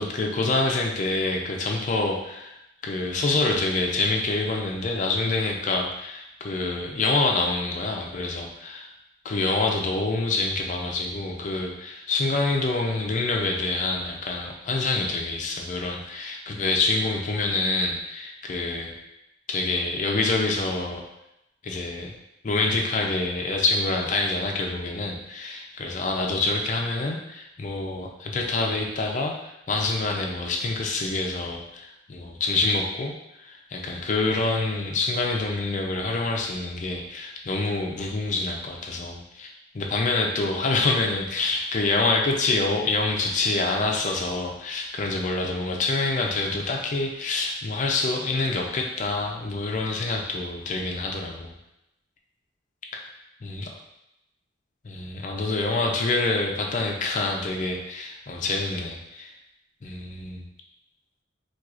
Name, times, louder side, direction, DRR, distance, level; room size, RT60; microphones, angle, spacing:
voice 1, 0.0-2.6 2.8-8.9 9.2-18.9 19.5-21.0 21.6-22.1 22.4-33.1 33.4-51.6 52.9-53.1 53.4-53.7 54.8-59.3 59.8-60.4, left 3 dB, 40° left, 1 dB, 0.4 m, -26 dB
4.4 x 2.3 x 2.4 m, 0.87 s
head